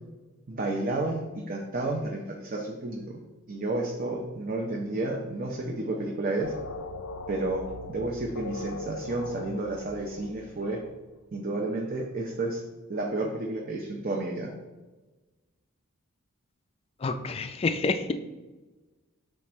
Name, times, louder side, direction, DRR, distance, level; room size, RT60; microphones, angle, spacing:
voice 1, 0.5-3.2 3.5-6.5 7.3-10.8 11.3-12.6 12.9-14.5, right 2 dB, 40° right, 0 dB, 0.6 m, -31 dB
sound 1, 6.4-11.1, left 3 dB, 85° left, 0.5 m, -40 dB
voice 2, 17.0-18.1, left 3 dB, 25° left, 9 dB, 0.3 m, -28 dB
6.4 x 3.4 x 4.2 m, 1.2 s
head